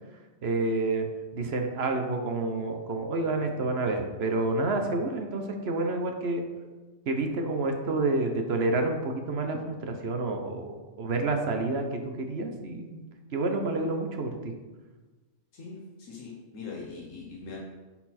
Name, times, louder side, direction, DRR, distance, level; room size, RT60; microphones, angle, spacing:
voice 1, 0.4-1.1 1.3-6.4 7.1-13.0 13.3-14.5, right 2 dB, 55° right, 4 dB, 1.1 m, -29 dB
voice 2, 15.5-17.6, left 4 dB, 85° left, -3 dB, 1.4 m, -41 dB
9.8 x 4.2 x 4.3 m, 1.3 s
omnidirectional pair, 1.3 m